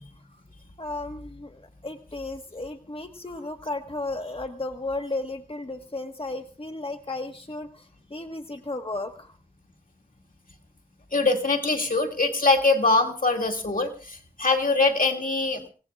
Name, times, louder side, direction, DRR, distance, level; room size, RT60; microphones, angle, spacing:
voice 1, 0.8-9.3, left 2 dB, 40° left, 5 dB, 1.4 m, -34 dB
voice 2, 11.1-15.6, left 3 dB, 70° left, 2 dB, 2.3 m, -23 dB
26.0 x 18.0 x 2.4 m, 0.38 s
wide cardioid pair, 40°, 15 cm